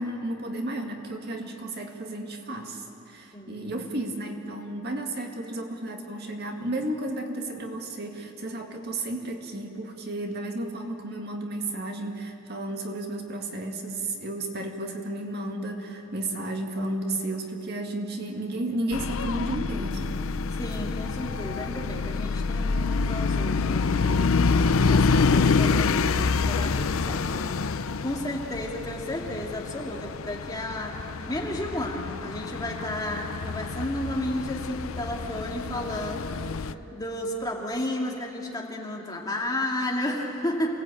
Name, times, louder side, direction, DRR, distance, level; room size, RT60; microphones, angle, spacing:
voice 1, 0.0-20.2, right 1 dB, 50° right, 2 dB, 2.0 m, -33 dB
voice 2, 3.3-3.7 20.6-24.5 24.9-27.7 28.0-40.7, left 1 dB, 15° left, -1 dB, 2.4 m, -33 dB
london bus approaches & leaves, 18.9-36.7, left 4 dB, 80° left, 0.6 m, -27 dB
28.0 x 18.0 x 8.6 m, 2.9 s
head